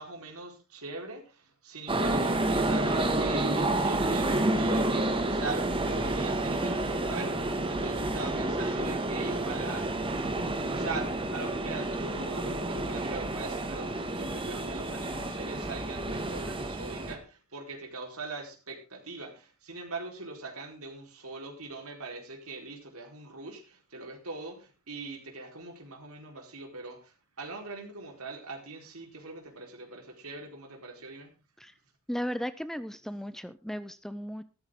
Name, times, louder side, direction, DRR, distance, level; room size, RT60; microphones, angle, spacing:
voice 1, 0.0-10.1 10.7-31.4, right 3 dB, 70° right, 4.4 m, -41 dB
sound 1, 1.9-17.1, right 2 dB, 25° right, 2.0 m, -29 dB
voice 2, 32.1-34.4, equal, ahead, 0.6 m, -36 dB
14.5 x 13.5 x 3.8 m
head